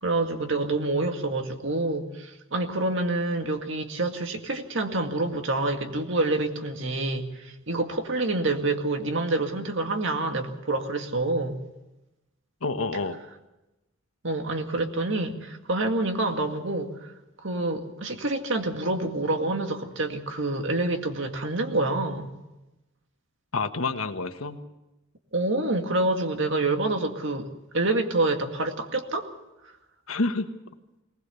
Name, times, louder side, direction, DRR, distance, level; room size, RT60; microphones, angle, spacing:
voice 1, 0.0-11.6 14.2-17.1 17.4-22.3 25.3-29.3, right 2 dB, 60° right, 5 dB, 2.1 m, -27 dB
voice 2, 12.6-13.2 23.5-24.6 30.1-30.5, left 3 dB, 90° left, 7 dB, 1.4 m, -28 dB
20.5 x 20.0 x 7.0 m, 0.98 s
head